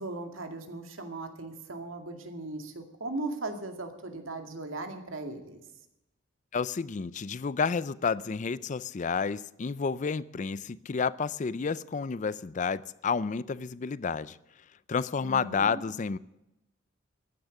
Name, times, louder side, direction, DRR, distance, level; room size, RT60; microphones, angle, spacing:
voice 1, 0.0-5.6 15.2-15.8, right 2 dB, 85° right, 2.2 m, -38 dB
voice 2, 6.5-14.4 14.9-16.2, left 5 dB, 40° left, 0.4 m, -30 dB
14.5 x 10.0 x 7.2 m
head